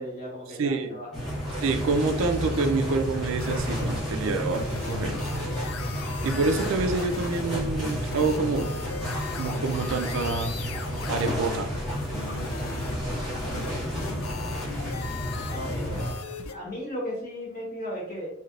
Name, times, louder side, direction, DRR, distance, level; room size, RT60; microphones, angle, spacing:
voice 1, 0.0-1.3 13.3-14.5 15.5-16.2 16.5-18.3, equal, 45° left, -4 dB, 1.3 m, -37 dB
voice 2, 0.6-0.9 1.6-5.1 6.2-8.7 9.4-10.5 11.1-11.7, right 3 dB, 65° right, 6 dB, 0.4 m, -27 dB
sound 1, 1.1-16.1, equal, ahead, 1.2 m, -31 dB
sound 2, 3.4-16.5, left 5 dB, 65° left, 0.4 m, -39 dB
3.2 x 2.7 x 2.4 m, 0.81 s
head